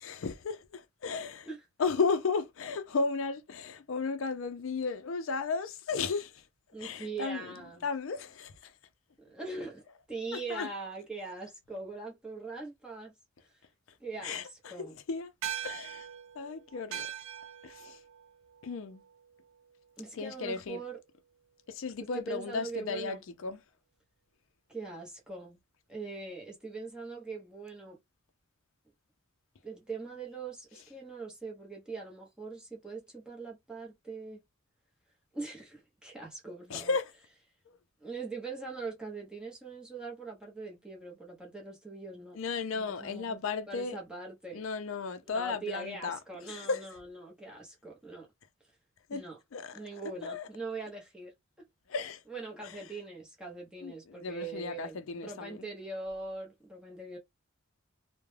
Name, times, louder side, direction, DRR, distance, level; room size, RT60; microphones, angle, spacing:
voice 1, 0.0-1.5 1.8-6.4 6.8-7.5 7.8-8.7 10.3-10.7 14.2-15.3 15.6-16.1 16.4-17.1 17.6-18.0 18.6-19.0 20.1-20.8 21.7-23.6 36.7-37.1 37.7-37.8 42.4-44.0 44.5-46.2 46.4-46.9 49.1-49.2 49.5-50.5 51.9-52.2 53.8-55.7, left 4 dB, 65° left, 0.4 m, -34 dB
voice 2, 6.7-7.9 9.2-13.1 14.0-15.0 20.0-21.0 22.1-23.2 24.7-25.6 25.9-28.0 29.6-34.4 35.3-36.9 38.0-42.4 42.7-43.4 43.7-44.6 45.3-48.3 49.1-49.4 49.7-51.3 52.3-57.2, right 3 dB, 5° right, 0.8 m, -42 dB
sound 1, 15.4-20.1, right 10 dB, 65° right, 0.3 m, -42 dB
2.2 x 2.1 x 3.1 m
head